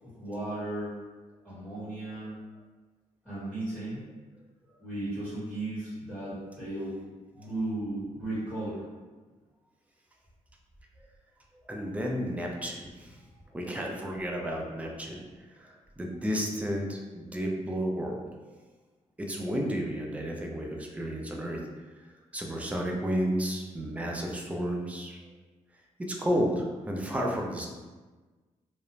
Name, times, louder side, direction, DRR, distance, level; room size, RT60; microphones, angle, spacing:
voice 1, 0.0-0.9 1.4-2.3 3.2-4.0 4.8-7.0 7.3-8.8, right 1 dB, 10° left, -13 dB, 1.3 m, -35 dB
voice 2, 11.5-13.2 13.5-18.2 18.5-18.6 19.2-21.6 22.0-25.3 26.0-27.7, equal, 10° right, 0 dB, 0.4 m, -32 dB
2.4 x 2.0 x 3.0 m, 1.3 s
cardioid pair, 105°, 13 cm